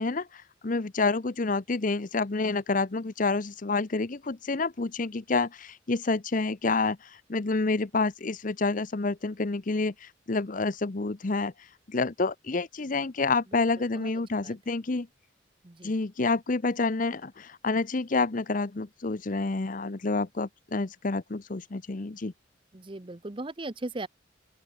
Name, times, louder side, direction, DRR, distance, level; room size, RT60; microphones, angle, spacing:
voice 1, 0.0-7.0 7.3-11.5 11.9-15.1 15.8-22.3, left 3 dB, 45° left, 0.8 m, -28 dB
voice 2, 22.7-24.1, right 2 dB, 25° right, 0.8 m, -38 dB
open air
head